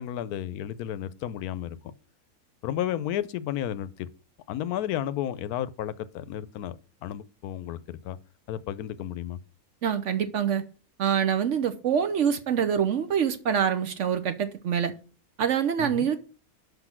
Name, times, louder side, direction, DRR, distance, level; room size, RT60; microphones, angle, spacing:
voice 1, 0.0-1.9 2.6-4.1 4.5-8.2 8.5-9.4 15.8-16.1, left 11 dB, 80° left, 1.0 m, -32 dB
voice 2, 9.8-10.6 11.0-14.9 15.4-16.3, right 8 dB, 60° right, 0.9 m, -25 dB
5.9 x 5.4 x 5.9 m
omnidirectional pair, 1.6 m